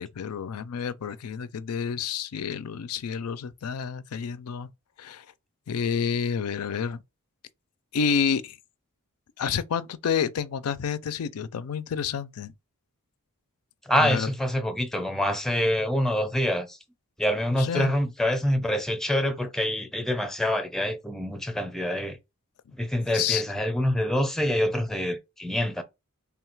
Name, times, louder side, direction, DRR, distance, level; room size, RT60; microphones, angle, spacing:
voice 1, 0.0-4.7 5.0-5.2 5.7-7.0 7.9-8.6 9.4-12.5 14.0-14.3 17.6-17.9 23.1-23.4, left 7 dB, 85° left, 0.4 m, -29 dB
voice 2, 13.9-16.8 17.2-22.2 22.7-25.8, left 1 dB, ahead, 0.5 m, -26 dB
3.5 x 2.4 x 4.5 m
head